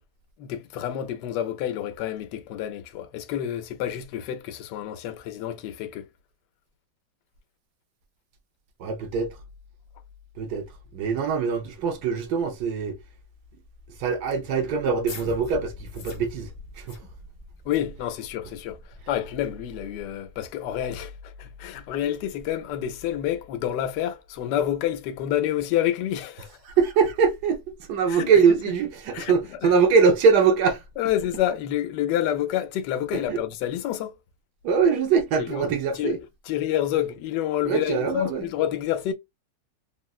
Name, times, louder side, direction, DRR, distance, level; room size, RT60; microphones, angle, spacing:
voice 1, 0.4-6.1 17.6-18.8 19.1-26.6 28.1-28.3 29.1-29.3 29.6-29.7 31.0-34.1 35.4-36.2 36.5-39.1, left 11 dB, 75° left, 1.2 m, -28 dB
voice 2, 8.8-9.3 10.4-10.7 10.9-13.0 14.0-16.5 16.8-17.0 26.7-27.6 27.9-30.8 33.1-33.4 34.6-36.2 37.6-38.5, right 5 dB, 70° right, 1.1 m, -22 dB
sound 1, 14.7-20.1, left 2 dB, 60° left, 0.6 m, -44 dB
3.6 x 2.1 x 2.3 m
omnidirectional pair, 1.9 m